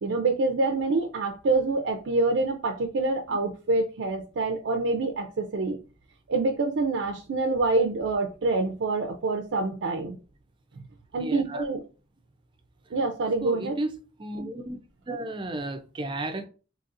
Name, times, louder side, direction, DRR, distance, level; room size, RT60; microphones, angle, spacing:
voice 1, 0.0-5.8 6.3-10.2 11.1-11.8 12.9-13.8, right 3 dB, 80° right, 0.5 m, -26 dB
voice 2, 11.2-11.6 13.4-13.9 14.2-14.8 15.1-16.5, right 1 dB, 25° right, 0.4 m, -33 dB
4.1 x 2.9 x 2.5 m
head